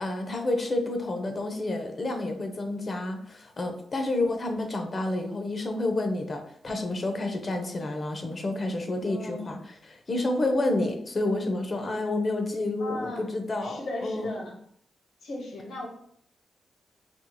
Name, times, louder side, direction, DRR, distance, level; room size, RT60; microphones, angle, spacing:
voice 1, 0.0-14.3, left 2 dB, 40° left, 5 dB, 0.6 m, -29 dB
voice 2, 9.0-9.5 12.8-13.3 13.6-14.6 15.2-15.9, left 1 dB, 85° left, 0 dB, 0.9 m, -36 dB
4.3 x 2.7 x 2.2 m, 0.69 s
cardioid pair, 110°, 0 cm